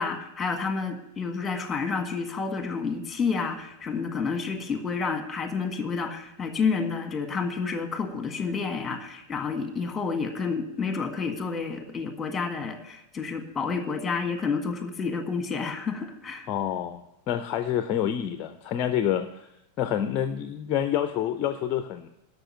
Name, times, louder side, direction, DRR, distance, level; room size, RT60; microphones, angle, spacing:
voice 1, 0.0-16.5, left 5 dB, 15° left, 7 dB, 1.7 m, -30 dB
voice 2, 16.5-19.5 19.8-22.1, left 10 dB, 35° left, 10 dB, 0.6 m, -28 dB
12.5 x 6.1 x 8.9 m, 0.87 s
figure-of-eight pair, 90°, 0 cm